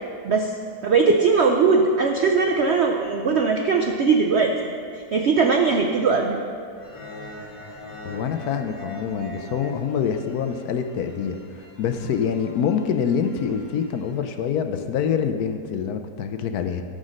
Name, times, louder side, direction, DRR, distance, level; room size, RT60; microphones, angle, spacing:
voice 1, 0.8-6.4, right 4 dB, 70° right, 3 dB, 0.6 m, -20 dB
sound 1, 6.8-14.1, equal, 45° left, 2.0 m, -43 dB
voice 2, 8.0-16.8, left 7 dB, 70° left, 7 dB, 1.0 m, -26 dB
13.5 x 5.1 x 6.4 m, 2.3 s
omnidirectional pair, 1.8 m